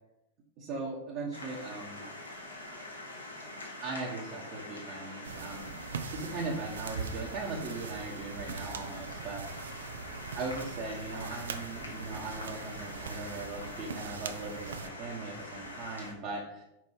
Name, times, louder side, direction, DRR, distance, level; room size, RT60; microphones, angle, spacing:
voice 1, 0.6-2.0 3.8-5.7 6.1-9.4 10.3-16.6, right 3 dB, 40° right, -4 dB, 1.2 m, -39 dB
sound 1, 1.3-16.1, left 1 dB, 80° left, 1.4 m, -44 dB
sound 2, 5.2-14.9, right 6 dB, 65° right, 0.5 m, -42 dB
5.3 x 4.7 x 4.7 m, 0.85 s
figure-of-eight pair, 90°, 0 cm